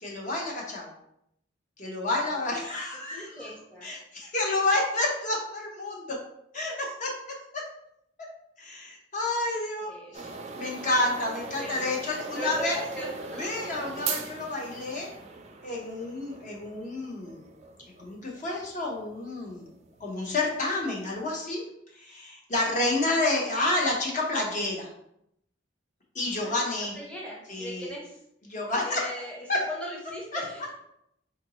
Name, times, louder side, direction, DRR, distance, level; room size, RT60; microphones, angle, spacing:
voice 1, 0.0-0.9 1.8-3.5 3.8-6.2 6.5-7.6 8.6-10.3 10.6-12.8 13.4-15.2 15.6-17.4 18.0-19.7 20.0-21.6 22.0-24.9 26.1-27.0 27.5-27.9 28.4-29.1 29.5-29.6 30.3-30.4, left 2 dB, 40° left, -1 dB, 0.7 m, -29 dB
voice 2, 3.1-3.9 9.8-10.2 11.4-12.0 12.3-13.5 26.3-26.6 26.9-28.2 28.8-30.7, equal, 5° left, -4 dB, 0.7 m, -39 dB
sound 1, 10.1-21.2, right 4 dB, 35° right, 0.4 m, -40 dB
3.8 x 2.5 x 2.9 m, 0.75 s
head